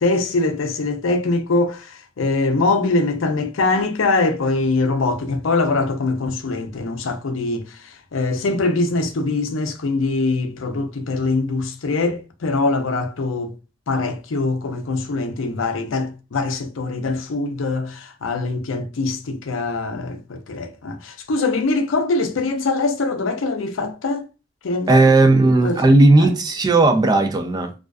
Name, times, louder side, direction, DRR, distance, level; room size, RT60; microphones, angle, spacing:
voice 1, 0.0-13.5 13.9-24.2 24.6-25.3 25.6-26.3, left 3 dB, 80° left, 0.5 m, -23 dB
voice 2, 24.9-27.7, right 2 dB, 20° right, 0.3 m, -15 dB
2.4 x 2.2 x 2.3 m
head